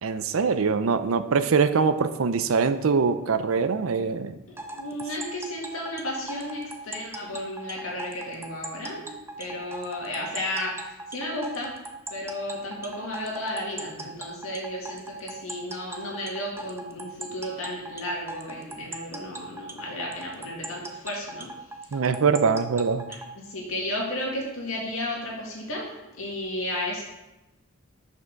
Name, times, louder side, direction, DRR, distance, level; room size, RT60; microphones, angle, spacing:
voice 1, 0.0-4.3 21.9-23.1, right 5 dB, 85° right, 11 dB, 0.5 m, -23 dB
voice 2, 4.5-9.1 9.4-10.8 11.1-11.7 12.1-21.5 23.4-25.9 26.1-27.0, left 1 dB, 85° left, -2 dB, 2.1 m, -33 dB
sound 1, 4.6-23.3, right 2 dB, 10° right, 0.5 m, -39 dB
6.2 x 5.6 x 5.1 m, 0.98 s
head